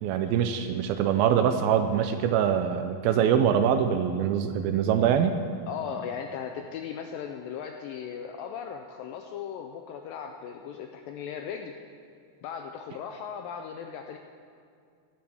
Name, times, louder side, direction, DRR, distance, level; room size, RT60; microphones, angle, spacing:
voice 1, 0.0-5.4, right 8 dB, 80° right, 8 dB, 2.3 m, -24 dB
voice 2, 5.7-11.8 12.4-14.2, left 7 dB, 85° left, 4 dB, 2.0 m, -37 dB
18.0 x 13.0 x 3.5 m, 2.3 s
omnidirectional pair, 4.6 m